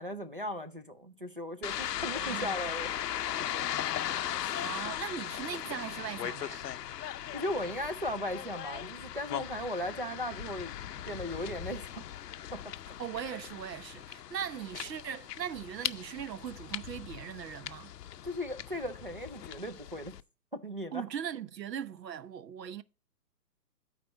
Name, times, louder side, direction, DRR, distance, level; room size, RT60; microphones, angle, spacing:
voice 1, 0.0-2.9 3.4-3.6 7.3-10.7 11.1-12.0 12.5-12.6 18.2-20.1 20.5-21.0, left 1 dB, 35° right, 0.4 m, -37 dB
sound 1, 1.6-20.2, left 11 dB, 70° left, 0.6 m, -38 dB
voice 2, 2.2-2.7 4.6-6.6 13.0-17.9 20.9-22.8, right 9 dB, 75° right, 0.8 m, -39 dB
8.9 x 4.2 x 6.3 m
hypercardioid pair, 175°, 50 cm